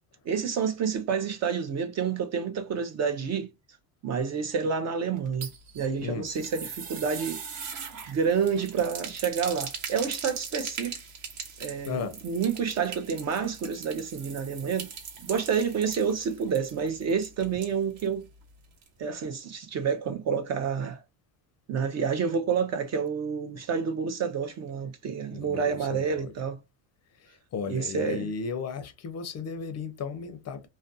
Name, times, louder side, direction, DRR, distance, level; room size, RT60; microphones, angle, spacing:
voice 1, 0.3-3.5 4.0-5.5 5.7-7.4 8.1-11.0 11.6-14.9 15.2-18.2 19.0-21.0 21.7-26.6 27.7-28.3, right 6 dB, 40° right, 0.4 m, -29 dB
sound 1, 5.2-18.1 18.4-18.5 18.8-18.9, right 6 dB, 70° right, 1.0 m, -40 dB
voice 2, 11.9-12.2 25.3-26.3 27.2-30.7, left 5 dB, 35° left, 0.5 m, -35 dB
2.4 x 2.2 x 2.5 m
supercardioid pair, 100°, 47 cm